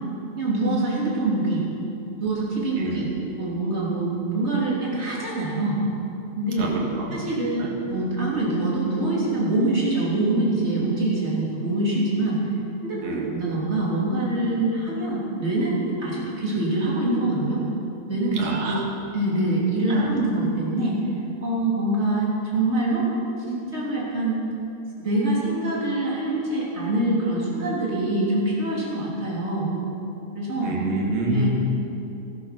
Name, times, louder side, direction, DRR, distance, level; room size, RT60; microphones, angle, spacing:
voice 1, 0.4-1.6 2.2-5.8 6.4-6.7 7.1-7.6 7.9-12.4 12.8-17.6 18.1-18.8 19.1-21.0 21.4-23.1 23.5-24.4 25.0-29.7 30.3-30.7 31.3-31.5, right 2 dB, 20° right, -6 dB, 3.3 m, -24 dB
voice 2, 6.6-7.2 7.6-7.7 13.0-13.3 18.4-18.8 19.9-20.1 30.6-31.5, right 2 dB, 65° right, -1 dB, 2.9 m, -28 dB
15.5 x 12.0 x 6.0 m, 2.9 s
omnidirectional pair, 3.4 m